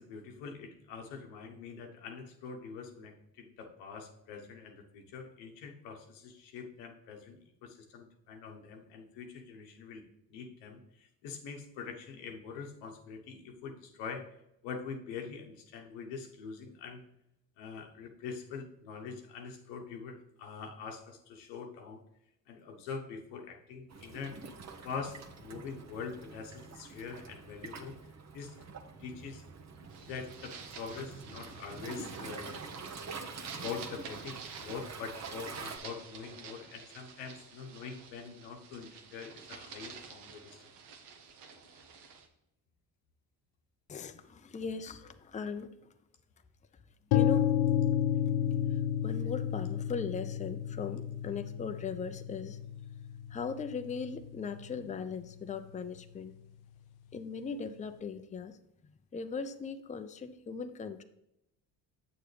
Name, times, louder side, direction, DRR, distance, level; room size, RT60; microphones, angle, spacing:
voice 1, 0.0-10.0 10.3-14.2 14.6-17.0 17.6-22.0 22.5-24.4 24.8-27.9 28.3-28.7 29.0-29.4 30.0-32.7 33.5-40.7, left 5 dB, 90° left, 3 dB, 1.2 m, -44 dB
Waves surf, 23.9-35.8, right 4 dB, 40° right, 1.0 m, -46 dB
sound 1, 29.9-42.3, right 6 dB, 75° right, 1.2 m, -49 dB
voice 2, 43.9-45.9 47.1-47.5 48.7-52.6 53.3-56.4 57.1-58.6 59.1-61.0, left 5 dB, 20° left, 9 dB, 0.6 m, -39 dB
sound 2, 47.1-55.0, left 10 dB, 70° left, 0.5 m, -31 dB
7.8 x 6.8 x 3.3 m, 0.83 s
supercardioid pair, 75°, 41 cm